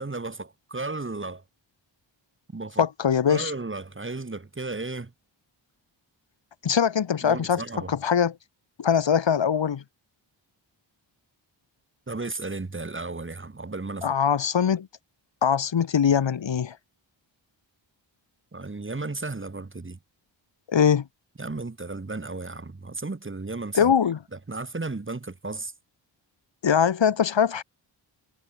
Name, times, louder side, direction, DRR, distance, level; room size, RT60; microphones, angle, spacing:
voice 1, 0.0-1.4 2.5-2.8 3.3-5.1 7.2-7.9 12.1-14.2 18.5-20.0 21.4-23.9 24.5-25.7, right 3 dB, 25° right, 2.3 m, -34 dB
voice 2, 2.8-3.5 6.6-7.6 7.9-8.3 8.8-9.8 14.0-14.9 15.4-16.8 20.7-21.1 23.7-24.2 26.6-27.6, left 7 dB, 65° left, 1.8 m, -22 dB
cardioid pair, 75°, 47 cm